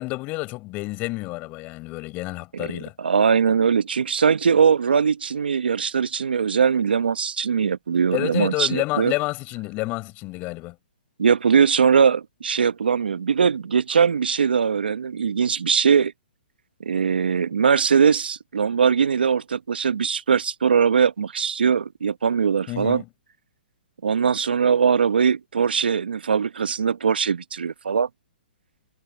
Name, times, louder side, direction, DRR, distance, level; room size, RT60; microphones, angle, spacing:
voice 1, 0.0-2.9 8.1-10.8 22.7-23.1, left 22 dB, 30° left, 5.3 m, -29 dB
voice 2, 3.0-9.1 11.2-16.1 16.8-23.0 24.0-28.1, right 6 dB, 85° right, 1.2 m, -21 dB
hypercardioid pair, 135°, 5 cm